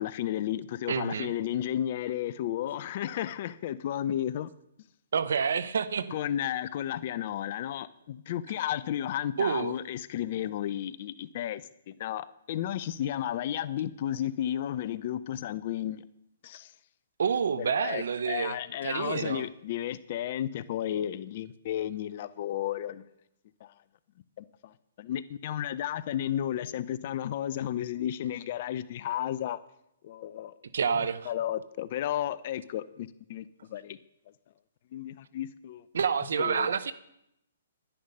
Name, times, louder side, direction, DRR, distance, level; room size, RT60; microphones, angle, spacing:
voice 1, 0.0-4.5 6.1-16.0 16.4-16.7 17.6-23.1 23.6-23.7 24.4-29.6 30.0-30.5 31.3-34.0 34.9-35.8 36.4-36.7, left 11 dB, 45° left, 16 dB, 0.6 m, -33 dB
voice 2, 0.9-1.3 5.1-6.2 9.4-9.8 17.2-18.6 18.8-19.5 30.7-31.3 35.9-36.9, right 6 dB, 70° right, 15 dB, 0.8 m, -28 dB
11.5 x 10.0 x 5.4 m, 0.80 s
hypercardioid pair, 135°, 0 cm